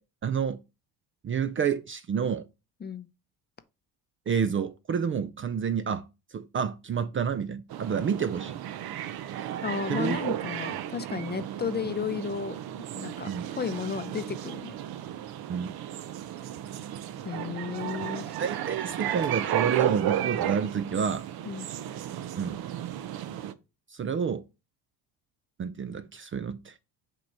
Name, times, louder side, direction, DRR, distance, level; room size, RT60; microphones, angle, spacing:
voice 1, 0.2-0.6 1.2-2.5 4.3-6.0 6.3-8.6 9.9-10.2 13.3-13.5 15.5-15.7 18.4-21.3 22.4-22.6 23.9-24.4 25.6-26.7, right 7 dB, 30° right, 0.5 m, -29 dB
sound 1, 7.7-23.5, right 11 dB, 55° right, 0.8 m, -34 dB
voice 2, 9.6-14.8 17.2-18.3 21.4-21.7, left 6 dB, 25° left, 0.6 m, -33 dB
7.6 x 3.0 x 4.6 m
supercardioid pair, 80°, 43 cm